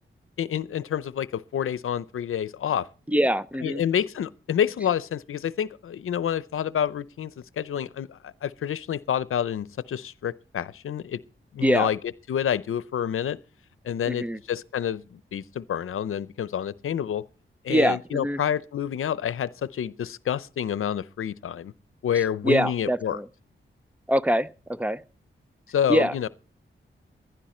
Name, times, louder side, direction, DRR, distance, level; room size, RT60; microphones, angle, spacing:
voice 1, 0.4-2.9 3.6-11.2 11.5-12.0 12.3-13.4 13.8-17.2 17.6-21.7 22.0-23.2 25.7-26.3, left 9 dB, 90° left, 0.7 m, -28 dB
voice 2, 3.1-3.8 11.6-11.9 14.1-14.4 17.7-18.4 22.4-23.3 24.1-25.0 25.9-26.1, equal, 5° right, 0.6 m, -24 dB
15.5 x 11.5 x 4.3 m
wide cardioid pair, 85°, 21 cm